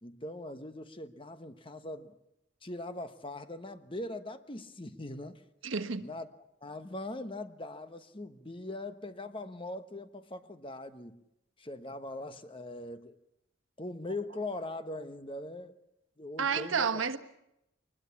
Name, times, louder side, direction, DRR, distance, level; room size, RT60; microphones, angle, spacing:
voice 1, 0.0-2.1 2.6-5.4 6.0-6.3 6.6-11.2 11.6-13.2 13.8-15.7 16.2-17.0, left 2 dB, 25° left, 1.2 m, -41 dB
voice 2, 5.6-6.1 16.4-17.2, right 6 dB, 90° right, 1.3 m, -30 dB
23.0 x 21.0 x 7.1 m
head